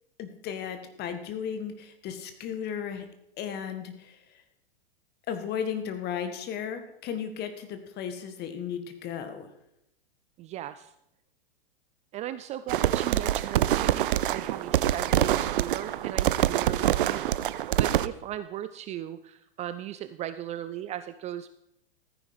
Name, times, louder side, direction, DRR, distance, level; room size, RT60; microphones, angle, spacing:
voice 1, 0.2-3.1 3.4-4.4 5.3-9.5, left 8 dB, 35° left, 8 dB, 1.9 m, -35 dB
voice 2, 10.4-10.9 12.1-21.7, right 12 dB, 25° right, 12 dB, 0.4 m, -38 dB
sound 1, 12.7-18.1, right 12 dB, 60° right, 0.6 m, -25 dB
14.5 x 9.9 x 4.9 m, 0.82 s
figure-of-eight pair, 100°, 29 cm